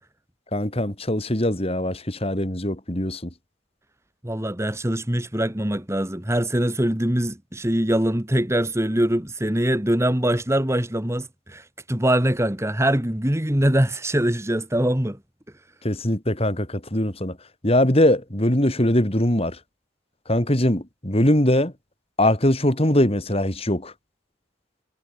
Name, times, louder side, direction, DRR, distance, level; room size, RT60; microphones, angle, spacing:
voice 1, 0.5-3.2 15.8-17.4 17.6-19.6 20.3-21.7 22.2-23.9, left 1 dB, 30° left, 3.2 m, -21 dB
voice 2, 4.2-15.2, right 1 dB, 15° right, 1.6 m, -23 dB
head